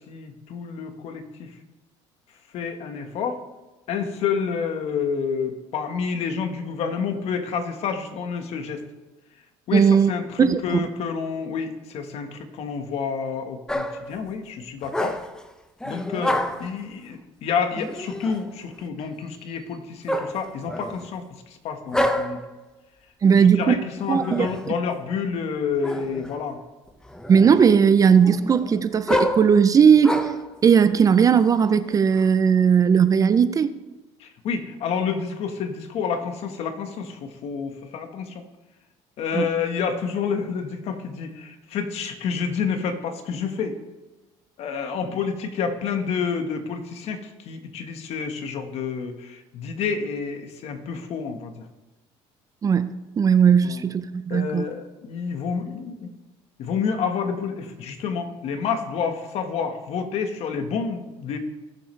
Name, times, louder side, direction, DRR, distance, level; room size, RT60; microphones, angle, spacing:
voice 1, 0.1-1.5 2.5-3.4 3.9-8.8 9.7-15.2 15.8-22.4 23.3-26.6 34.2-38.4 39.2-43.8 44.6-51.6 53.6-53.8 54.3-56.1 56.6-61.4, left 6 dB, 55° left, 1.4 m, -29 dB
voice 2, 9.7-10.1 10.4-10.8 23.2-23.8 24.1-24.5 27.3-30.3 30.6-33.7 39.3-39.5 52.6-54.6, right 7 dB, 30° right, 0.5 m, -17 dB
sound 1, 13.7-14.1 14.8-15.4 15.8-16.8 17.7-18.5 20.1-21.1 21.9-22.5 24.0-24.7 25.8-26.4 26.9-27.7 28.2-30.5 31.2-32.3, left 1 dB, 5° left, 0.7 m, -28 dB
18.5 x 7.5 x 3.3 m
cardioid pair, 125°, 12 cm